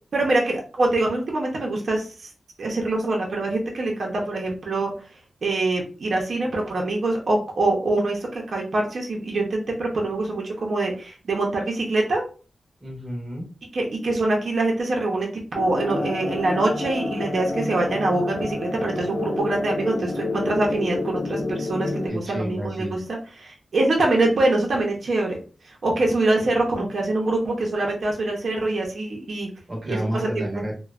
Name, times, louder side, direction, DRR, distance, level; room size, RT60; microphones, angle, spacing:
voice 1, 0.1-2.3 2.6-4.9 5.4-12.2 13.7-25.4 25.6-29.5 29.9-30.6, right 2 dB, 65° right, -1 dB, 0.7 m, -24 dB
voice 2, 12.8-13.5 22.1-23.1 29.7-30.7, equal, 30° right, -1 dB, 1.0 m, -30 dB
sound 1, 15.5-22.1, left 2 dB, 55° left, 0.6 m, -29 dB
3.0 x 2.1 x 2.4 m, 0.37 s
wide cardioid pair, 110°, 0 cm